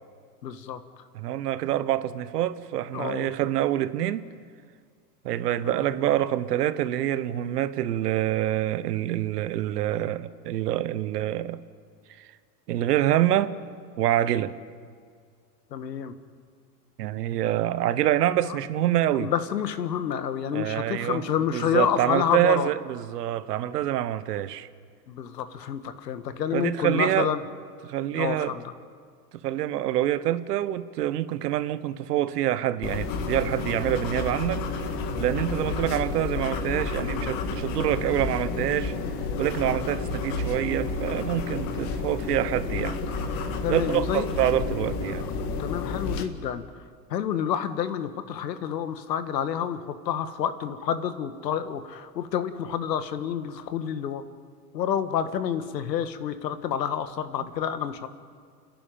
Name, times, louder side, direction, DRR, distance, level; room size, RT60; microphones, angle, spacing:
voice 1, 0.4-0.8 2.9-3.3 5.6-5.8 15.7-16.1 18.5-18.6 19.2-22.7 25.1-27.4 28.2-28.6 39.6-39.9 43.6-44.3 45.6-46.6 47.1-54.3 54.7-58.1, left 8 dB, 80° left, 1.7 m, -29 dB
voice 2, 1.1-4.3 5.2-11.6 12.2-12.3 12.7-13.5 14.0-14.5 17.0-19.3 20.5-21.3 21.5-24.7 26.5-27.3 27.8-28.6 29.4-34.6 35.2-38.9 39.4-43.0 43.7-45.3, right 12 dB, 70° right, 1.2 m, -26 dB
sound 1, 32.8-46.2, left 4 dB, 40° left, 2.0 m, -30 dB
29.5 x 11.0 x 9.3 m
hypercardioid pair, 110°, 50 cm